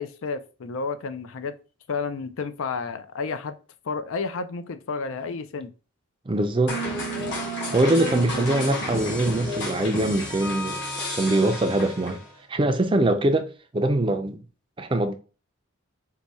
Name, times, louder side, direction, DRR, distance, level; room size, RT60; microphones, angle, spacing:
voice 1, 0.0-1.6 1.9-3.6 3.9-5.7, left 4 dB, 70° left, 0.4 m, -31 dB
voice 2, 6.3-6.8 7.7-10.8 11.1-12.2 12.5-14.4 14.8-15.1, right 1 dB, 25° right, 0.4 m, -23 dB
sound 1, 6.7-12.3, equal, 55° left, 1.3 m, -31 dB
4.7 x 2.2 x 4.0 m
head